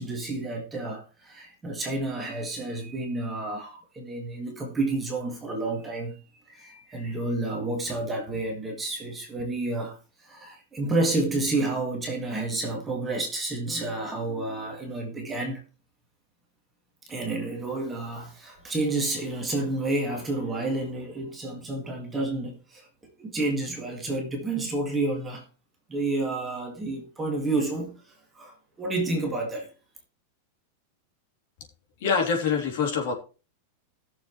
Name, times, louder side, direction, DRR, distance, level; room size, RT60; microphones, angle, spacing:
voice 1, 0.0-15.6 17.1-25.4 25.9-29.7, right 2 dB, 10° right, 2.0 m, -30 dB
voice 2, 32.0-33.1, left 5 dB, 50° left, 3.4 m, -25 dB
18.5 x 7.0 x 3.2 m
supercardioid pair, 175°, 0 cm